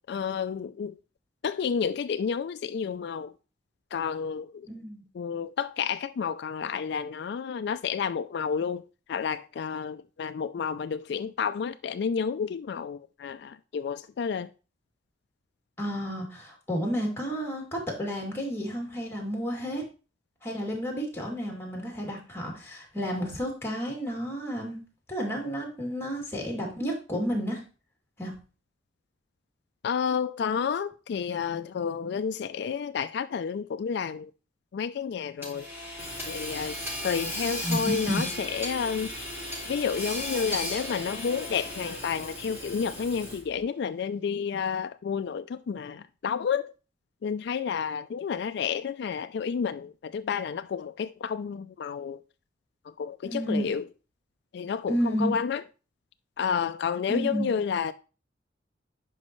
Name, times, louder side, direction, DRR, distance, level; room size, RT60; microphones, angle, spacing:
voice 1, 0.1-0.9 1.4-3.3 3.9-4.5 5.2-8.8 9.1-14.5 29.8-34.3 34.7-35.7 36.3-36.7 37.0-39.1 39.7-46.7 47.2-52.2 53.0-53.8 54.5-55.6 56.4-57.9, left 6 dB, 65° left, 0.3 m, -30 dB
voice 2, 4.7-5.0 15.8-19.8 20.4-24.8 25.1-27.6 28.2-28.3 37.6-38.2 53.2-53.7 54.9-55.3 57.1-57.5, equal, 15° left, 2.5 m, -31 dB
Hammer / Sawing, 35.4-43.6, left 1 dB, 15° right, 4.3 m, -36 dB
9.7 x 5.4 x 3.1 m
head